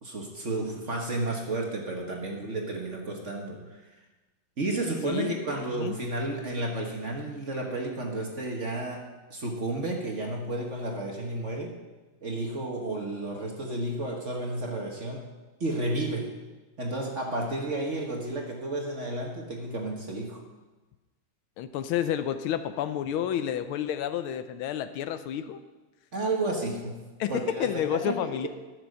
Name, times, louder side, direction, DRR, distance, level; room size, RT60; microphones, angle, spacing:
voice 1, 0.0-3.8 4.6-11.8 12.2-15.3 15.6-16.3 16.8-20.4 26.1-28.5, right 2 dB, 40° right, 1 dB, 1.3 m, -32 dB
voice 2, 5.0-5.4 5.8-6.0 21.6-25.6 27.2-28.5, left 10 dB, 80° left, 11 dB, 1.4 m, -30 dB
12.0 x 6.3 x 6.5 m, 1.2 s
omnidirectional pair, 2.4 m